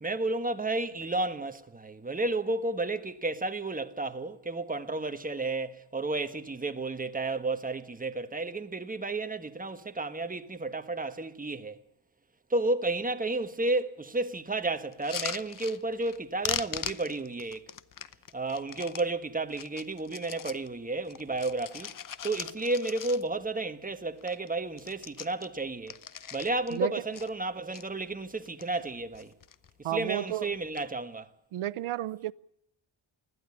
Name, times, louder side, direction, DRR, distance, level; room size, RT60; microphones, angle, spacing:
voice 1, 0.0-11.8 12.5-17.6 18.3-21.9 22.2-26.0 26.3-29.3 29.9-31.3, right 2 dB, 15° right, 1.3 m, -32 dB
sound 1, 14.9-16.2 16.4-19.1 19.5-20.7 21.0-23.5 23.9-24.0 24.2-24.5 24.7-26.8 27.1-27.8 28.4-28.9 29.1-29.7 30.5-30.8, left 8 dB, 40° left, 0.8 m, -40 dB
voice 2, 29.8-30.5 31.5-32.3, right 13 dB, 85° right, 0.7 m, -32 dB
20.5 x 14.5 x 9.7 m
wide cardioid pair, 115°, 49 cm